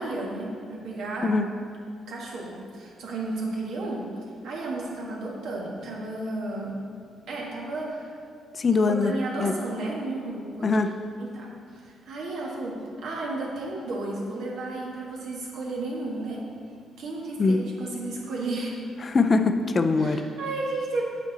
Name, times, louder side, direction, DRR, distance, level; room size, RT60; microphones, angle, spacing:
voice 1, 0.0-1.3 2.1-4.1 4.4-6.8 7.3-8.1 9.0-10.7 11.2-16.5 17.0-18.8 20.0-21.0, right 2 dB, 75° right, -3 dB, 1.4 m, -33 dB
voice 2, 8.6-9.1 9.4-9.5 10.6-10.9 17.4-17.6 19.1-20.2, left 4 dB, 35° left, 7 dB, 0.4 m, -22 dB
8.1 x 4.3 x 3.9 m, 2.3 s
cardioid pair, 90°, 0 cm